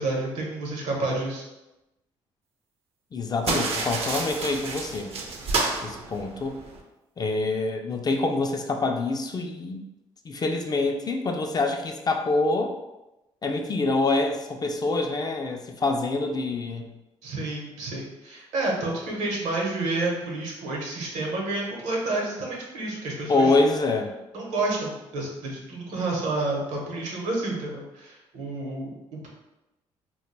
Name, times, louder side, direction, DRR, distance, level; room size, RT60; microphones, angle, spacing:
voice 1, 0.0-1.5 17.2-23.6 24.3-29.3, right 2 dB, 75° right, -2 dB, 0.8 m, -30 dB
voice 2, 3.1-5.1 5.8-6.6 7.2-9.8 10.2-12.7 13.4-16.9 23.3-24.1, left 3 dB, 35° left, 3 dB, 0.3 m, -26 dB
sound 1, 3.4-6.8, right 3 dB, 55° right, 0.5 m, -30 dB
2.2 x 2.0 x 3.1 m, 0.98 s
supercardioid pair, 65°, 12 cm